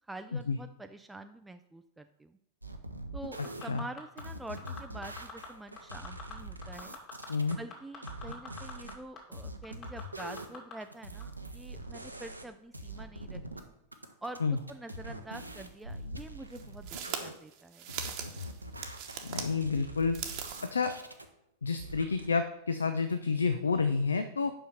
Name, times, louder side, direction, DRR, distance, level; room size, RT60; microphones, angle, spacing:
voice 1, 0.1-2.4 3.1-7.0 7.6-13.6 14.2-17.9, right 2 dB, 5° right, 7 dB, 0.3 m, -46 dB
sound 1, 2.6-3.6 4.2-7.6 8.0-9.0 9.3-10.6 10.8-12.5 12.7-13.6 13.9-17.3 17.9-21.3 21.7-22.3, right 1 dB, 85° right, 0.7 m, -44 dB
sound 2, 3.4-4.2 4.6-5.5 5.8-6.3 6.6-8.9 9.2-9.3 9.6-10.7 11.2-11.3, left 6 dB, 35° left, 2.3 m, -44 dB
sound 3, 15.6-15.7 16.5-19.5 20.0-20.7, right 8 dB, 45° right, 1.0 m, -40 dB
voice 2, 19.2-20.2 20.7-20.9 21.6-24.5, left 4 dB, 75° left, 10 dB, 0.4 m, -29 dB
5.6 x 5.5 x 6.2 m, 0.79 s
figure-of-eight pair, 90°, 0 cm